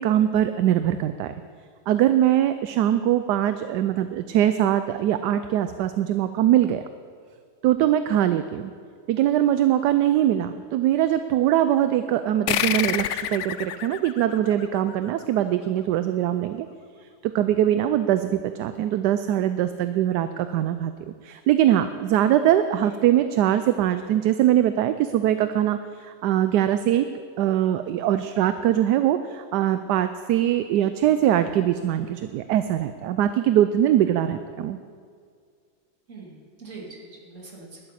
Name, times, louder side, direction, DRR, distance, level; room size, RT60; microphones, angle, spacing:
voice 1, 0.0-1.3 1.9-6.8 7.6-8.7 9.1-16.7 17.2-27.1 27.4-34.8, right 11 dB, 75° right, 10 dB, 1.1 m, -22 dB
sound 1, 12.5-15.5, left 10 dB, 90° left, 0.6 m, -28 dB
voice 2, 36.1-37.9, right 3 dB, 45° right, -3 dB, 2.9 m, -43 dB
12.0 x 8.8 x 9.8 m, 2.1 s
omnidirectional pair, 1.9 m